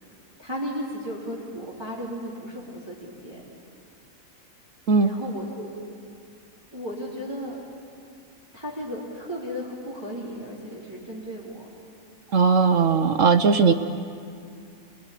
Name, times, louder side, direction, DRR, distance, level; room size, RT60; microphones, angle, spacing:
voice 1, 0.4-3.4 5.0-5.7 6.7-7.6 8.5-11.7, equal, 15° right, -5 dB, 3.5 m, -35 dB
voice 2, 12.3-13.7, right 5 dB, 65° right, 8 dB, 1.2 m, -18 dB
28.5 x 20.0 x 10.0 m, 2.4 s
omnidirectional pair, 1.5 m